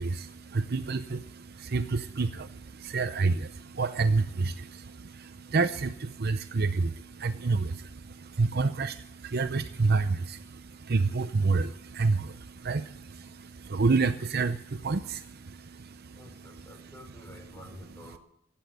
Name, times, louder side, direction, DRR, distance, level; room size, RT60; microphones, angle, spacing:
voice 1, 0.0-16.2, right 4 dB, 50° right, 10 dB, 0.6 m, -29 dB
voice 2, 16.2-18.2, left 1 dB, 10° left, 1 dB, 5.1 m, -49 dB
16.0 x 8.8 x 9.2 m, 0.72 s
head